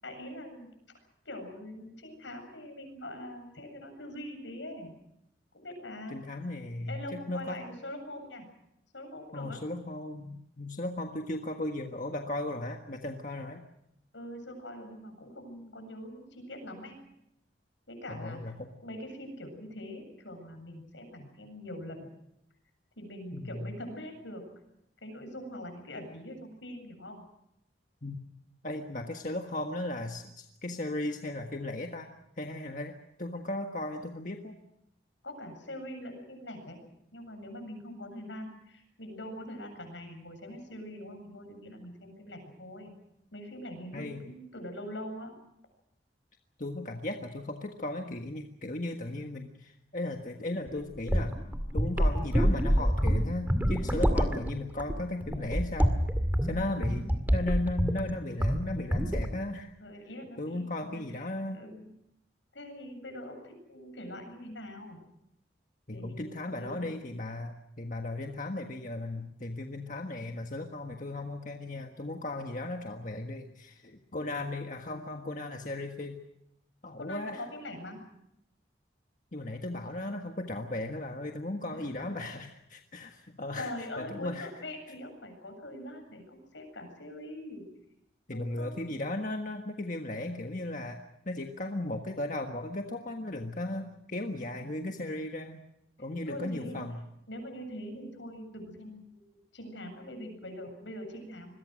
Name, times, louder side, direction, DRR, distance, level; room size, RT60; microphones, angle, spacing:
voice 1, 0.0-0.7 1.2-4.9 5.5-6.2 6.9-8.5 8.9-9.6 14.1-17.0 17.9-18.5 18.8-22.1 23.0-24.4 25.0-27.2 35.2-36.8 37.1-42.9 43.3-45.3 59.8-61.9 62.5-65.0 65.9-66.9 77.0-78.0 81.7-82.1 83.6-87.6 88.3-88.9 96.2-96.8 97.3-101.5, left 1 dB, 85° left, 6 dB, 7.8 m, -43 dB
voice 2, 6.1-7.6 9.3-13.6 18.1-18.7 23.3-23.7 28.0-28.2 28.6-32.1 32.4-34.6 43.9-44.2 46.6-51.3 51.7-56.0 56.4-57.1 57.3-59.7 60.4-61.6 65.9-76.2 76.8-77.4 79.3-83.7 84.0-84.5 88.3-91.0 91.2-95.6 96.0-97.0, left 2 dB, 45° left, 3 dB, 1.6 m, -36 dB
sound 1, 50.7-58.1 58.4-58.7 58.9-59.4, equal, 10° right, 2.1 m, -27 dB
27.0 x 22.5 x 6.4 m, 0.80 s
head